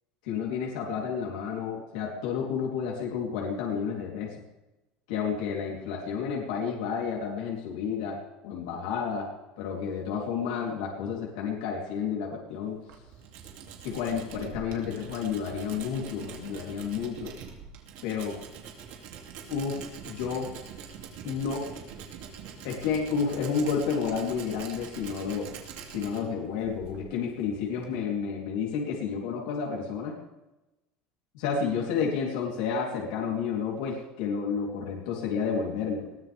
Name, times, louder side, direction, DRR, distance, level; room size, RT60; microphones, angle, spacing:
voice 1, 0.2-4.3 5.1-9.3 9.6-12.8 13.8-17.3 18.0-18.4 19.5-19.8 20.1-20.5 21.2-21.7 22.6-25.5 25.9-30.1 31.3-36.1, left 6 dB, 90° left, -3 dB, 3.7 m, -31 dB
Tools, 12.6-28.0, right 7 dB, 55° right, 3.1 m, -44 dB
21.5 x 17.5 x 3.7 m, 1.0 s
cardioid pair, 175°, 3 cm